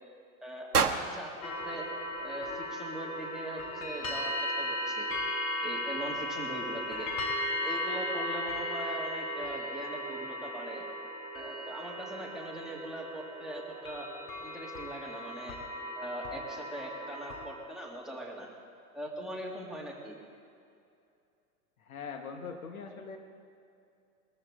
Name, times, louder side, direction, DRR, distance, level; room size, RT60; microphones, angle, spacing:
voice 1, 0.4-1.9 2.2-5.1 5.6-7.1 7.6-10.8 11.3-14.1 14.4-15.6 16.0-18.5 18.9-20.2, right 1 dB, ahead, -3 dB, 2.3 m, -41 dB
sound 1, 0.7-2.9, right 5 dB, 90° right, 0.9 m, -32 dB
sound 2, 1.4-17.5, left 1 dB, 30° left, 2.0 m, -36 dB
voice 2, 21.8-23.2, left 5 dB, 70° left, 4 dB, 1.5 m, -41 dB
21.5 x 13.5 x 3.7 m, 2.5 s
figure-of-eight pair, 95°, 44 cm